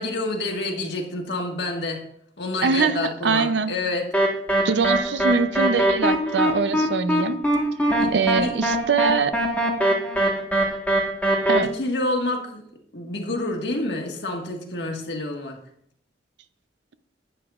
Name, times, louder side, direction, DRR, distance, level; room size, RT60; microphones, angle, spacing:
voice 1, 0.0-2.0 2.4-4.1 8.0-8.1 8.4-8.5 11.6-12.6 12.9-15.6, left 2 dB, 65° left, 1 dB, 1.6 m, -28 dB
voice 2, 2.6-3.7 4.6-7.4 8.1-9.3 11.5-11.7, right 5 dB, 70° right, 12 dB, 0.5 m, -23 dB
sound 1, 4.1-11.6, right 1 dB, 10° left, 1.4 m, -21 dB
10.5 x 9.2 x 2.4 m, 0.68 s
head